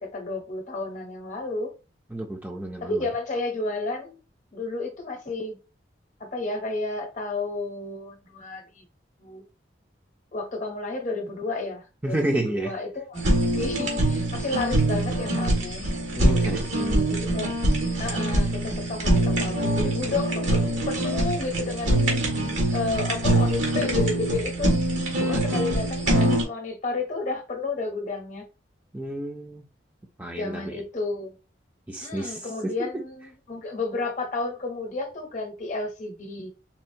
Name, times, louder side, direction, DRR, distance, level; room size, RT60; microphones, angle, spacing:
voice 1, 0.0-1.7 2.8-4.2 4.5-5.6 6.2-8.8 9.2-9.4 10.3-13.2 13.5-15.9 17.1-17.5 18.0-22.1 22.7-24.8 25.2-28.5 30.4-31.3 32.0-36.5, left 3 dB, 40° left, 0.7 m, -31 dB
voice 2, 2.1-3.1 12.0-12.7 16.1-17.1 25.2-25.6 28.9-29.6 30.2-30.6 31.9-32.9, right 1 dB, 10° right, 0.4 m, -31 dB
Fire, 13.1-26.4, right 1 dB, 90° right, 1.4 m, -24 dB
4.2 x 2.1 x 2.6 m
head